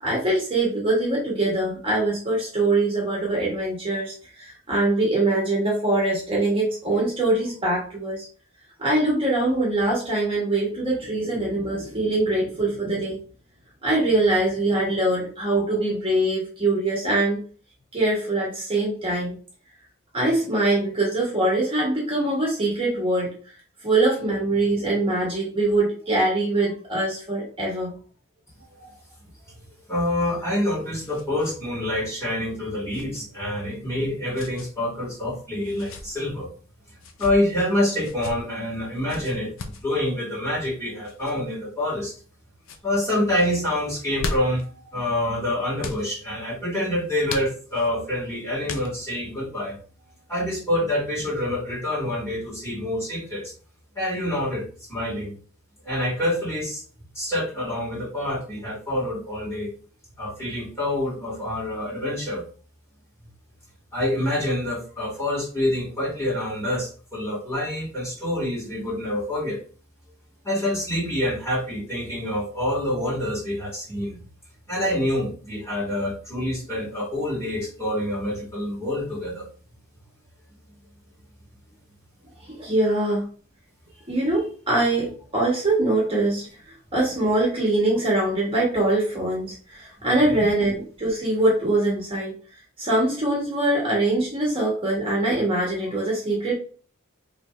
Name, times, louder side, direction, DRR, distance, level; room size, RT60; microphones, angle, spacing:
voice 1, 0.0-8.3 8.8-13.2 13.8-17.4 17.9-19.3 20.1-23.3 23.8-27.9 82.5-83.2 84.1-86.5 86.9-92.3 92.8-96.5, right 2 dB, 25° right, -4 dB, 1.7 m, -23 dB
voice 2, 29.9-36.5 37.2-42.1 42.8-49.8 50.3-53.5 53.9-55.3 55.8-56.8 57.1-59.7 60.2-62.4 63.9-69.6 70.4-74.2 74.7-79.5 90.3-90.5, left 1 dB, 15° left, -5 dB, 2.4 m, -27 dB
sound 1, 30.2-31.6 31.9-32.0 32.9-33.2 34.3-34.7 35.6-36.1 36.9-37.4 38.0-38.3 39.1-39.8 41.0-41.3 42.0-42.3 42.6-42.8 43.9-44.7 45.8-46.0 47.3-47.9 48.6-49.2, left 3 dB, 70° left, 0.7 m, -36 dB
4.7 x 3.4 x 3.3 m, 0.41 s
head